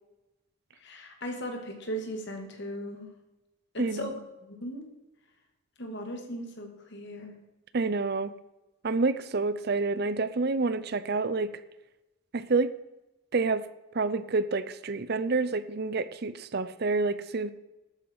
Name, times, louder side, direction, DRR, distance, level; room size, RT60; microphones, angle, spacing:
voice 1, 0.8-3.1 3.7-4.1 4.4-4.9 5.8-7.4, equal, 55° left, 3 dB, 2.5 m, -37 dB
voice 2, 3.8-4.1 7.7-8.3 8.8-11.5 12.3-12.7 13.3-13.7 13.9-17.5, right 3 dB, 50° right, 14 dB, 0.6 m, -28 dB
12.5 x 9.1 x 4.8 m, 0.98 s
head